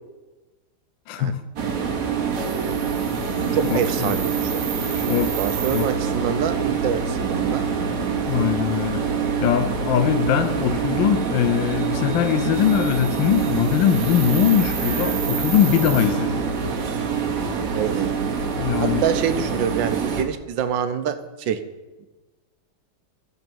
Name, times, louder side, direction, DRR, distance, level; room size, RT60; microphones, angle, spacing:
voice 1, 1.1-1.4 3.5-4.2 4.9-5.4 5.7-5.9 8.3-9.0 9.4-16.4 18.6-19.1, left 10 dB, 80° left, 10 dB, 1.3 m, -21 dB
sound 1, 1.6-20.2, right 6 dB, 55° right, 1.2 m, -25 dB
voice 2, 2.4-2.9 3.5-4.8 5.0-7.6 17.7-18.1 18.8-21.6, right 8 dB, 75° right, 11 dB, 1.4 m, -26 dB
13.5 x 6.7 x 4.5 m, 1.2 s
omnidirectional pair, 2.1 m